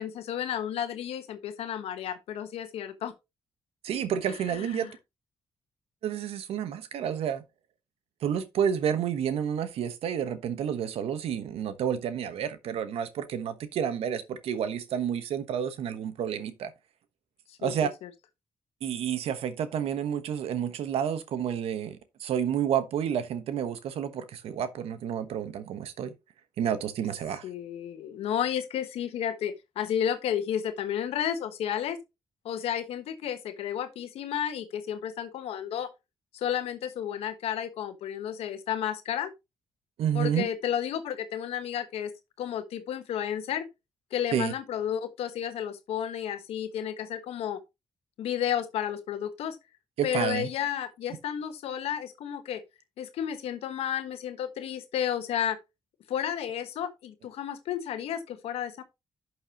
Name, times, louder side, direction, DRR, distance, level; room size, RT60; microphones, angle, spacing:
voice 1, 0.0-3.1 4.3-4.9 17.5-17.7 18.0-18.1 27.4-32.0 32.4-35.9 36.3-39.3 40.1-42.1 42.4-43.6 44.1-47.6 48.2-49.6 50.0-52.6 53.0-55.6 56.1-58.8, left 9 dB, 85° left, 1.3 m, -32 dB
voice 2, 3.8-4.9 6.0-7.4 8.2-16.7 17.6-17.9 18.8-26.1 26.6-27.5 40.0-40.5 44.3-44.5 50.0-50.5, right 9 dB, 80° right, 1.1 m, -30 dB
11.5 x 6.4 x 2.9 m
supercardioid pair, 55°, 10 cm